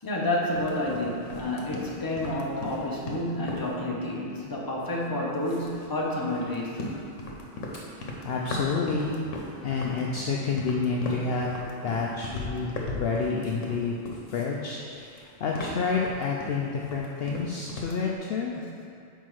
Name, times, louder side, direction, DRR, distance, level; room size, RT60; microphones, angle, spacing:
voice 1, 0.0-7.0 9.8-10.0 18.6-18.7, left 1 dB, 20° left, -4 dB, 0.9 m, -30 dB
sound 1, 0.5-5.0 5.4-14.6 14.8-18.1, left 2 dB, 85° left, 1.2 m, -38 dB
voice 2, 8.2-9.2 9.6-11.5 11.8-14.0 14.3-18.5, left 4 dB, 65° left, -2 dB, 0.7 m, -29 dB
6.0 x 4.6 x 4.7 m, 2.5 s
omnidirectional pair, 1.3 m